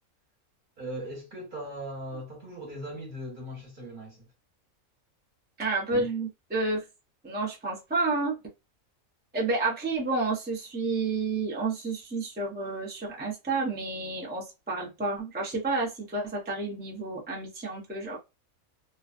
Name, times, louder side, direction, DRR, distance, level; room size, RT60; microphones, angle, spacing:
voice 1, 0.8-4.3 5.9-6.1, right 1 dB, 40° right, 1.1 m, -39 dB
voice 2, 5.6-6.8 7.2-8.3 9.3-18.2, right 3 dB, 15° right, 0.3 m, -30 dB
2.4 x 2.2 x 2.5 m
omnidirectional pair, 1.5 m